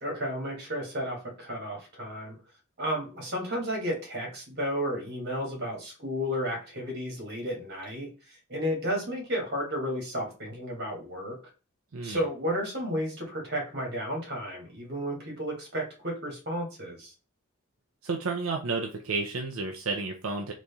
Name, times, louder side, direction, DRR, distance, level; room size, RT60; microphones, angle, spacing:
voice 1, 0.0-2.4 2.8-11.4 12.0-17.1, equal, 55° right, 0 dB, 2.0 m, -33 dB
voice 2, 18.0-20.5, right 3 dB, 80° right, 2 dB, 0.6 m, -31 dB
4.0 x 3.1 x 3.5 m, 0.33 s
head